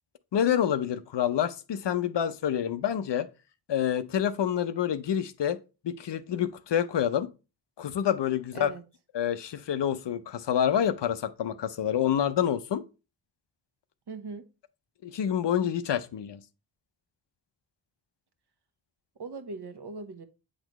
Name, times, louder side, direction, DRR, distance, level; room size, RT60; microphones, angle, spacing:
voice 1, 0.3-3.3 3.7-5.6 5.8-7.3 7.8-8.7 9.1-12.8 15.0-16.4, left 9 dB, 60° left, 0.6 m, -27 dB
voice 2, 14.1-14.4 19.2-20.2, right 4 dB, 55° right, 1.1 m, -39 dB
7.8 x 4.0 x 3.0 m
cardioid pair, 40°, 48 cm